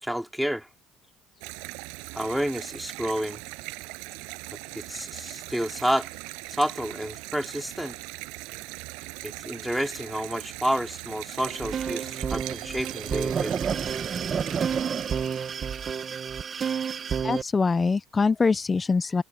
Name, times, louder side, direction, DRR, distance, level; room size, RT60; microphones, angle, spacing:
voice 1, 0.0-0.7 2.1-3.4 4.8-6.1 6.5-8.0 9.2-13.5, equal, ahead, 4.2 m, -29 dB
sound 1, 1.4-16.2, right 29 dB, 80° right, 7.4 m, -40 dB
sound 2, 11.4-17.4, right 7 dB, 40° right, 1.3 m, -30 dB
voice 2, 17.2-19.2, left 4 dB, 25° left, 0.6 m, -24 dB
supercardioid pair, 75°, 0 cm